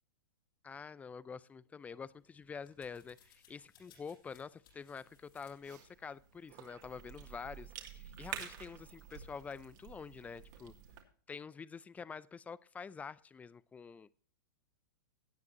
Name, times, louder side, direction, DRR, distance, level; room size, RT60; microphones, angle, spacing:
voice 1, 0.6-10.7 11.3-14.1, left 5 dB, 10° left, 20 dB, 0.5 m, -47 dB
sound 1, 1.8-7.2, left 6 dB, 70° left, 5.8 m, -68 dB
Cough / Chewing mastication, 5.1-11.0, right 10 dB, 55° right, 2.6 m, -50 dB
17.0 x 9.5 x 2.9 m, 0.43 s
hypercardioid pair, 115°, 12 cm